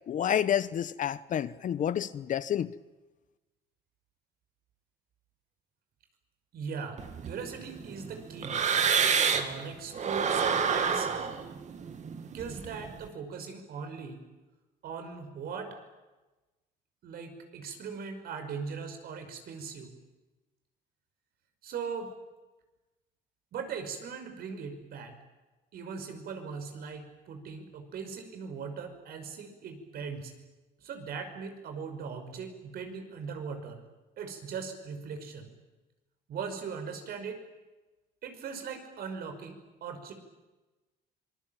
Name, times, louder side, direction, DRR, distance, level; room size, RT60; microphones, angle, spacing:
voice 1, 0.1-2.7, left 9 dB, 50° left, 1.0 m, -29 dB
voice 2, 6.5-8.6 9.3-11.1 12.3-14.2 14.8-15.8 17.0-20.0 21.6-22.1 23.5-25.2 25.7-30.3 30.8-33.8 34.2-35.5 36.3-37.4 38.2-40.1, right 5 dB, 65° right, 5.7 m, -39 dB
sound 1, 7.0-9.6 9.9-13.0, right 6 dB, 45° right, 2.6 m, -29 dB
26.0 x 21.5 x 9.0 m
cardioid pair, 110°, 17 cm